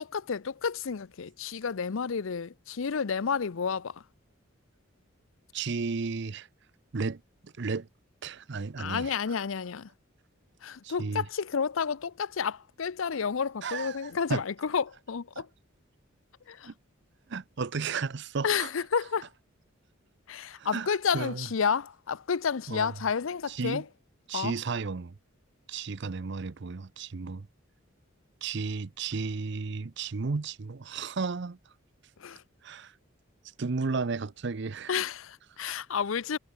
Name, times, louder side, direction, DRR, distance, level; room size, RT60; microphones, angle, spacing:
voice 1, 0.0-3.9 8.8-9.9 10.6-15.5 16.5-16.7 18.4-19.3 20.3-23.8 24.3-24.5 32.2-32.4 34.9-36.4, left 6 dB, 70° left, 0.6 m, -30 dB
voice 2, 5.5-6.5 6.9-7.9 8.2-9.4 10.8-11.3 13.6-14.4 15.4-15.5 16.6-16.7 17.3-18.7 20.6-21.5 22.7-22.9 23.5-23.8 24.3-25.1 25.7-27.5 28.4-31.6 32.6-32.9 33.6-34.9 35.6-35.7, right 4 dB, 55° right, 0.6 m, -34 dB
head